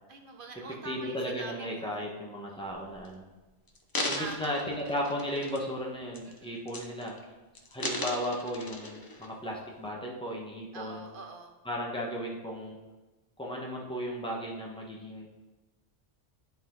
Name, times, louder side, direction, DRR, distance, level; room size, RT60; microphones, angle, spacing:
voice 1, 0.1-2.0 2.4-2.9 4.1-4.6 6.2-6.6 10.7-11.5, right 3 dB, 50° right, 3 dB, 0.9 m, -45 dB
voice 2, 0.8-3.2 4.1-7.3 7.7-11.1 11.6-12.8 13.4-15.3, equal, 5° left, -2 dB, 1.1 m, -35 dB
sound 1, 2.9-3.1 3.7-5.8 6.1-6.4 6.7-7.2 7.5-9.3 9.8-9.9, left 1 dB, 35° left, 0.4 m, -37 dB
10.0 x 4.2 x 3.9 m, 1.2 s
omnidirectional pair, 1.3 m